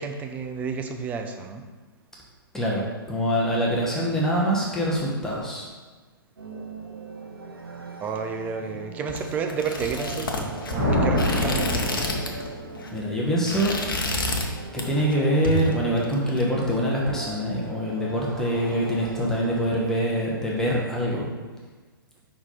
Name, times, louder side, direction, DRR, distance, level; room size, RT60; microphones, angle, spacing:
voice 1, 0.0-1.6 8.0-12.1, right 5 dB, 10° right, 5 dB, 0.4 m, -31 dB
voice 2, 2.5-5.7 12.9-13.8 14.7-21.3, equal, 5° left, -4 dB, 1.1 m, -24 dB
sound 1, 6.4-20.9, right 3 dB, 75° right, 0.8 m, -40 dB
sound 2, 9.1-12.5 12.7-13.0 13.3-14.5 14.8-15.1 15.4-16.4, left 2 dB, 60° left, 1.0 m, -29 dB
sound 3, 10.7-13.0, left 1 dB, 30° right, 1.5 m, -25 dB
5.4 x 4.7 x 4.2 m, 1.3 s
figure-of-eight pair, 120°, 13 cm